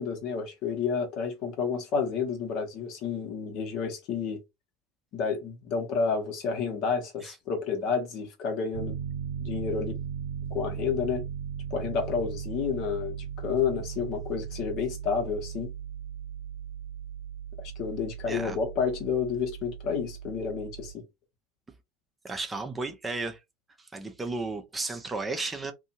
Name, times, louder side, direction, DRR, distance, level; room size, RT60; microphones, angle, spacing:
voice 1, 0.0-4.4 5.1-9.0 9.4-10.0 10.5-11.2 11.7-13.2 13.4-15.7 17.8-21.0, left 6 dB, 50° left, 1.0 m, -30 dB
Piano, 8.7-20.9, right 8 dB, 65° right, 0.6 m, -37 dB
voice 2, 22.2-23.4 23.8-25.7, right 3 dB, 15° right, 0.6 m, -34 dB
2.6 x 2.3 x 2.8 m
figure-of-eight pair, 70°, 0 cm